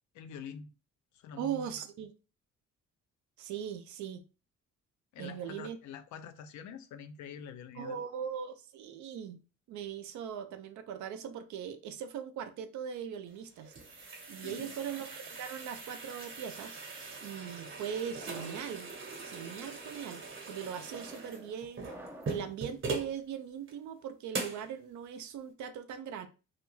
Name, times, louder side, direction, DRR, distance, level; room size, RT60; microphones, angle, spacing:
voice 1, 0.2-0.7 1.1-1.7 5.1-8.0 14.4-14.8, left 7 dB, 70° left, 0.5 m, -46 dB
voice 2, 1.4-2.1 3.4-4.2 5.2-5.8 7.7-9.4 9.7-13.7 14.3-16.8 17.2-18.9 19.2-21.9 22.3-26.3, right 8 dB, 75° right, 0.5 m, -40 dB
sound 1, 13.3-23.2 23.7-23.8 24.3-24.7, right 4 dB, 45° right, 0.9 m, -41 dB
sound 2, 14.6-16.0 16.8-17.2 18.0-18.7 19.4-19.7 20.6-22.5, right 1 dB, 5° right, 0.4 m, -52 dB
2.4 x 2.2 x 3.0 m
cardioid pair, 90°, 30 cm